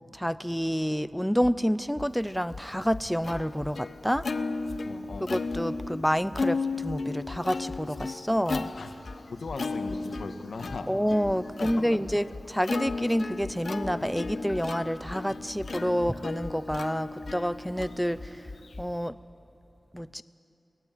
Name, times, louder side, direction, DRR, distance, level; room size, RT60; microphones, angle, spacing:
voice 1, 0.1-4.3 5.2-8.7 10.9-18.5 18.8-19.2 19.9-20.2, equal, ahead, 15 dB, 0.5 m, -28 dB
sound 1, 1.4-1.6 2.0-2.1 2.5-3.8 4.1-4.3 4.7-6.0 6.3-6.5 6.9-8.1 8.5-12.5 12.9-18.9, left 3 dB, 35° left, 0.7 m, -43 dB
Plucked string instrument, 2.3-19.1, left 3 dB, 70° left, 1.0 m, -35 dB
voice 2, 4.8-5.3 8.7-8.9 9.3-11.0 11.6-11.7 15.4-15.8, left 3 dB, 85° left, 6 dB, 1.7 m, -38 dB
23.5 x 18.0 x 9.3 m, 2.9 s
wide cardioid pair, 110°, 0 cm